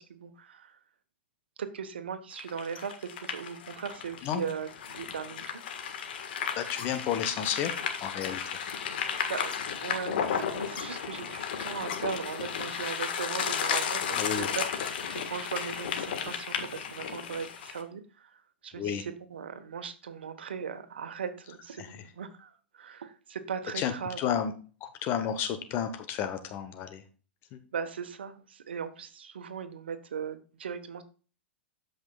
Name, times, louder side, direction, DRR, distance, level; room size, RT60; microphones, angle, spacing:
voice 1, 0.1-0.8 1.6-5.4 9.3-18.0 18.6-24.2 27.7-31.0, right 6 dB, 70° right, 9 dB, 1.2 m, -38 dB
sound 1, 2.4-17.8, left 7 dB, 60° left, 1.5 m, -34 dB
voice 2, 4.2-4.5 6.6-7.7 8.0-8.4 14.2-14.5 18.7-19.0 21.8-22.0 23.7-23.9 24.2-24.5 24.8-27.0 27.5-27.6, left 9 dB, 40° left, 9 dB, 1.0 m, -31 dB
13.5 x 5.5 x 2.3 m, 0.37 s
figure-of-eight pair, 100°, 6 cm